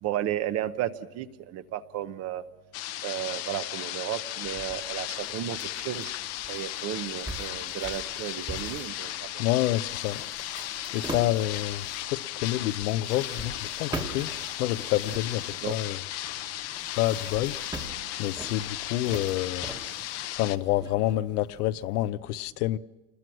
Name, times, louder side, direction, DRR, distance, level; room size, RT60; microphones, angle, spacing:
voice 1, 0.0-2.4 3.0-6.2 6.5-9.4 15.6-15.8, right 12 dB, 35° right, 0.8 m, -33 dB
sound 1, 2.7-20.6, left 14 dB, 35° left, 0.7 m, -36 dB
sound 2, 4.4-21.9, right 2 dB, 10° right, 1.4 m, -43 dB
voice 2, 9.4-10.2 10.9-14.3 14.6-16.0 17.0-17.6 18.2-19.7 20.3-22.8, left 15 dB, 75° left, 0.9 m, -28 dB
29.5 x 21.0 x 6.2 m
supercardioid pair, 150°, 46 cm